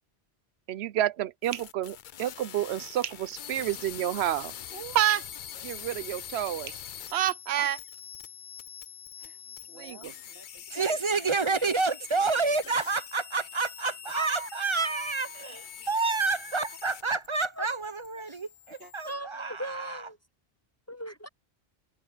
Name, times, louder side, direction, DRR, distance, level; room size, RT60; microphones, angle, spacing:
voice 1, 0.7-4.5 5.0-5.2 5.6-6.8 7.1-7.8 9.8-10.0, right 12 dB, 90° right, 0.9 m, -29 dB
sound 1, 1.4-17.3 17.6-19.1, left 9 dB, 55° left, 0.7 m, -44 dB
voice 2, 4.7-5.0 7.6-7.9 9.2-11.7 12.2-12.4 18.8-18.9, right 3 dB, 70° right, 3.9 m, -48 dB
voice 3, 10.7-20.1, right 4 dB, 35° right, 0.7 m, -29 dB
voice 4, 14.1-14.5 14.8-15.9 17.6-17.7 18.3-18.4 19.1-20.2 20.9-21.3, right 1 dB, 20° left, 0.5 m, -39 dB
omnidirectional pair, 1.1 m